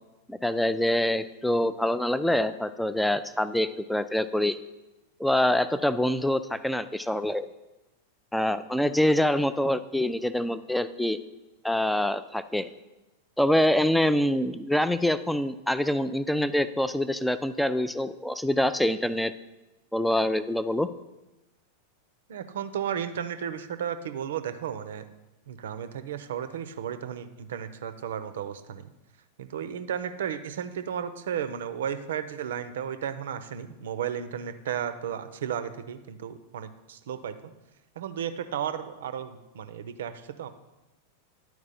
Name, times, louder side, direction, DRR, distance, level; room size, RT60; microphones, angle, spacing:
voice 1, 0.3-4.6 5.2-7.5 8.3-11.2 11.6-12.7 13.4-19.3 19.9-20.9, left 1 dB, 5° left, 13 dB, 0.3 m, -25 dB
voice 2, 22.3-25.1 25.5-28.9 29.4-37.3 38.0-40.5, right 8 dB, 60° right, 11 dB, 0.5 m, -34 dB
11.0 x 4.6 x 4.1 m, 1.0 s
figure-of-eight pair, 90°, 0 cm